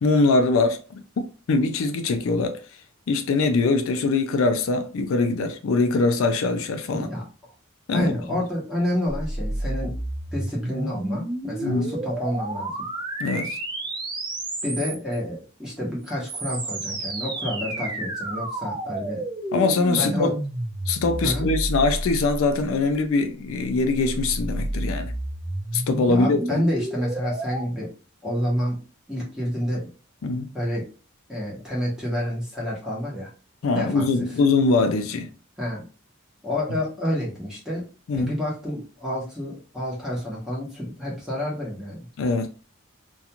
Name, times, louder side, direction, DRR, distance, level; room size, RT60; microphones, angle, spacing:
voice 1, 0.0-1.0 1.5-2.6 3.1-7.1 7.9-8.2 11.6-11.9 13.2-13.6 19.5-20.3 20.9-25.1 25.7-26.6 30.2-30.5 33.6-35.3 36.7-36.8 38.1-38.4 42.2-42.5, left 3 dB, 70° left, 0.4 m, -22 dB
voice 2, 6.9-7.2 7.9-9.9 10.3-12.7 14.6-19.2 20.0-20.3 21.2-21.5 26.1-27.9 28.2-28.8 29.1-29.9 30.5-30.9 31.3-33.3 33.7-34.1 35.6-35.8 36.4-37.9 38.1-42.0, left 1 dB, 5° right, 0.9 m, -29 dB
sound 1, 9.1-15.2 16.0-22.7 23.7-27.6, right 1 dB, 20° right, 0.4 m, -31 dB
2.4 x 2.2 x 2.8 m
head